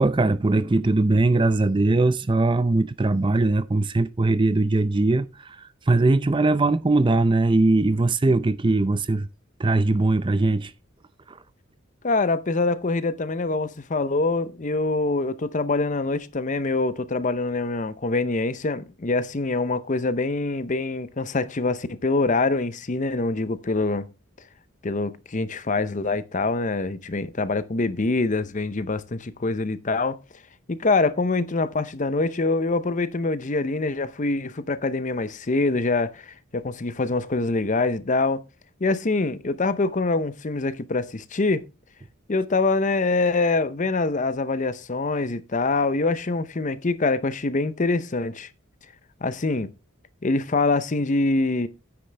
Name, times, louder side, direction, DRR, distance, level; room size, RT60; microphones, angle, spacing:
voice 1, 0.0-9.3 9.6-10.7 11.3-11.4, right 2 dB, 25° right, 0.5 m, -21 dB
voice 2, 12.0-24.1 24.8-30.2 30.7-38.4 38.8-41.6 42.3-48.5 49.2-49.7 50.2-51.7, left 3 dB, 35° left, 0.6 m, -24 dB
9.6 x 9.6 x 3.3 m
head